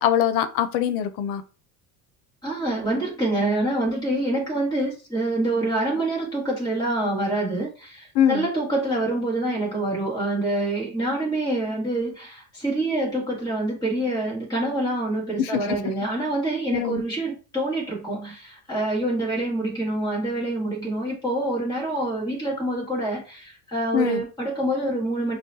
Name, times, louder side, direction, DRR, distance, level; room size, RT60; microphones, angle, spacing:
voice 1, 0.0-1.4 8.1-8.5 15.4-15.8 16.7-17.0 23.9-24.2, left 10 dB, 80° left, 11 dB, 0.7 m, -23 dB
voice 2, 2.4-25.4, right 1 dB, 10° left, -4 dB, 1.8 m, -26 dB
6.0 x 2.3 x 2.7 m, 0.35 s
cardioid pair, 135°, 37 cm